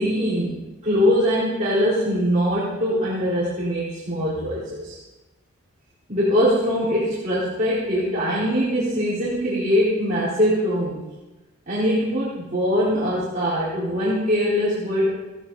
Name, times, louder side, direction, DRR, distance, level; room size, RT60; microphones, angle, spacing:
voice 1, 0.0-5.0 6.1-11.0 11.7-15.2, equal, 35° right, -10 dB, 4.1 m, -22 dB
17.5 x 14.5 x 4.0 m, 1.1 s
head